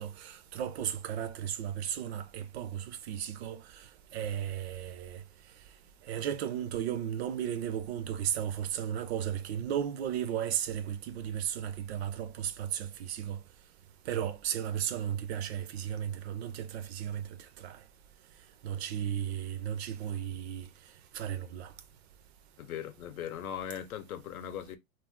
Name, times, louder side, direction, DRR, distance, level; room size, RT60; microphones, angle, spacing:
voice 1, 0.0-3.8 4.1-5.2 6.1-13.4 14.1-17.2 17.6-17.8 18.6-20.7 21.1-21.7, right 9 dB, 50° right, 0.5 m, -35 dB
voice 2, 22.6-24.8, left 9 dB, 85° left, 0.8 m, -39 dB
2.4 x 2.3 x 3.4 m
supercardioid pair, 145°, 42 cm